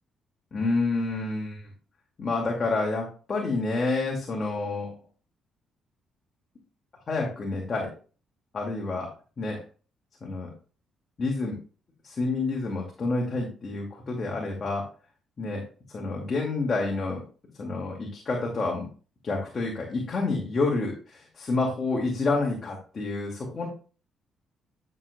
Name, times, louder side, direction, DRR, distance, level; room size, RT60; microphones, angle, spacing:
voice 1, 0.5-1.7 2.2-4.9 7.1-7.9 8.5-9.1 9.4-9.6 10.2-10.5 11.2-11.5 12.0-14.9 15.4-17.2 17.6-18.9 19.2-23.7, left 3 dB, 40° left, -1 dB, 2.4 m, -28 dB
11.0 x 6.9 x 2.4 m, 0.37 s
cardioid pair, 90°, 0 cm